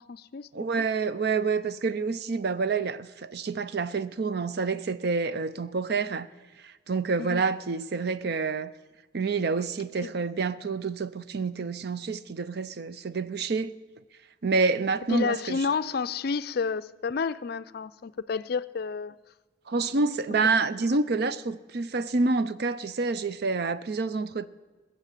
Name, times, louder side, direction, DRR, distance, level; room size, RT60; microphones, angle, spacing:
voice 1, 0.0-0.5 0.8-0.9 7.2-7.4 10.0-10.1 15.1-19.2, left 5 dB, 50° left, 0.4 m, -30 dB
voice 2, 0.5-6.3 6.6-8.7 9.1-13.8 14.4-15.6 19.7-24.5, right 4 dB, 55° right, 0.5 m, -28 dB
20.0 x 7.3 x 8.3 m
head